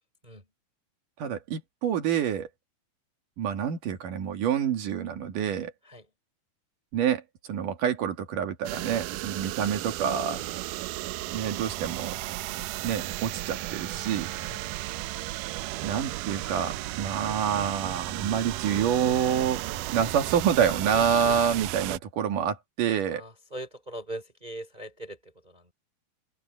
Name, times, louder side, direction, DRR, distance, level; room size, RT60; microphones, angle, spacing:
voice 1, 1.2-2.5 3.4-5.7 6.9-7.2 7.5-10.4 11.3-12.1 12.8-14.3 15.8-23.2, right 8 dB, 65° right, 3.3 m, -27 dB
sound 1, 8.6-22.0, right 17 dB, 80° right, 1.9 m, -34 dB
voice 2, 23.1-25.7, right 1 dB, 10° right, 3.7 m, -41 dB
open air
omnidirectional pair, 4.3 m